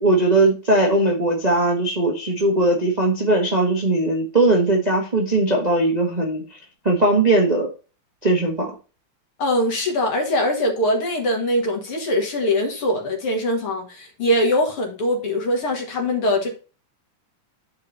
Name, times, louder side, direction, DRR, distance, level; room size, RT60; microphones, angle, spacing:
voice 1, 0.0-6.4 6.8-7.7 8.2-8.7, right 2 dB, 40° right, 0.6 m, -19 dB
voice 2, 9.4-16.6, left 1 dB, 50° left, 2.4 m, -22 dB
12.5 x 4.8 x 2.8 m
omnidirectional pair, 3.6 m